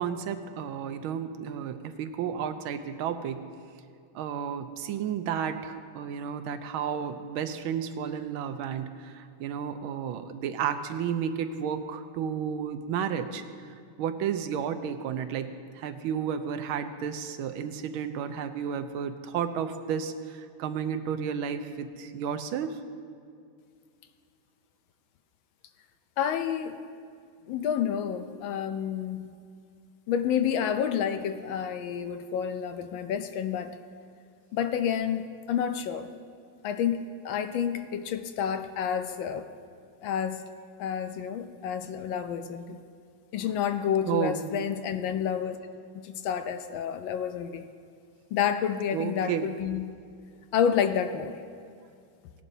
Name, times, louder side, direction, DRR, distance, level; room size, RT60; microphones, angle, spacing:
voice 1, 0.0-3.4 4.1-13.4 14.0-22.8 44.1-44.5 48.9-49.5, right 8 dB, 85° right, 9 dB, 1.4 m, -32 dB
voice 2, 26.2-26.8 27.5-29.3 30.1-33.8 34.5-36.1 36.6-39.4 40.0-40.5 40.8-42.8 43.3-45.6 46.0-47.7 48.3-49.9 50.5-51.4, left 8 dB, 75° left, 9 dB, 1.3 m, -29 dB
18.0 x 11.0 x 2.7 m, 2.3 s
omnidirectional pair, 2.3 m